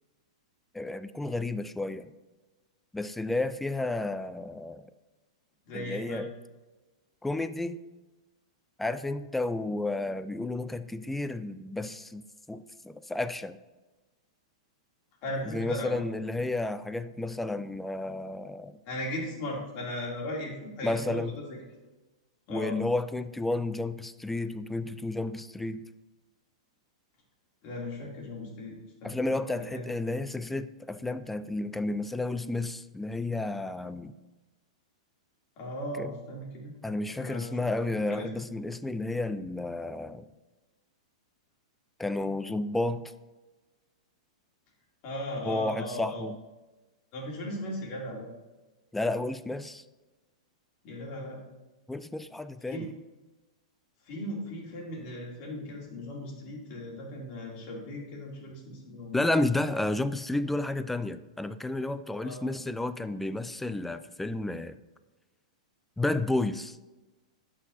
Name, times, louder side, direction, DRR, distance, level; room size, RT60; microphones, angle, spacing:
voice 1, 0.7-2.1 2.9-4.9 5.7-6.3 7.2-7.8 8.8-13.6 15.5-18.8 20.8-21.4 22.5-25.8 29.0-34.1 36.0-36.2 36.8-40.3 42.0-43.0 45.4-46.4 48.9-49.8 51.9-52.9 59.1-64.8 66.0-66.8, left 2 dB, 5° left, 12 dB, 0.4 m, -31 dB
voice 2, 5.7-6.3 15.2-16.0 18.9-21.6 22.5-22.8 27.6-29.4 29.7-29.9 35.6-36.7 37.1-37.5 38.1-38.3 45.0-46.2 47.1-48.3 50.8-51.4 52.7-52.9 54.1-59.3 62.2-62.6, left 1 dB, 45° left, -2 dB, 2.8 m, -37 dB
11.0 x 6.3 x 2.7 m, 1.1 s
hypercardioid pair, 130°, 4 cm